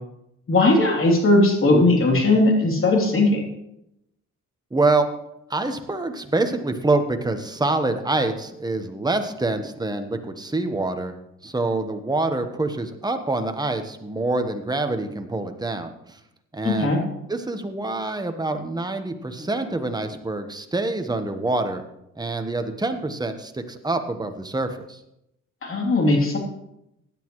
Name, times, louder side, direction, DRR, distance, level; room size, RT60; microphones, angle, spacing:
voice 1, 0.5-3.4 16.6-17.0 25.6-26.4, left 2 dB, 45° left, 0 dB, 3.3 m, -18 dB
voice 2, 4.7-5.1 5.5-11.2 11.4-16.2 16.5-16.9 17.3-21.8 22.2-25.0, right 2 dB, 15° right, 7 dB, 1.2 m, -26 dB
16.0 x 9.9 x 3.2 m, 0.84 s
cardioid pair, 90°, 30 cm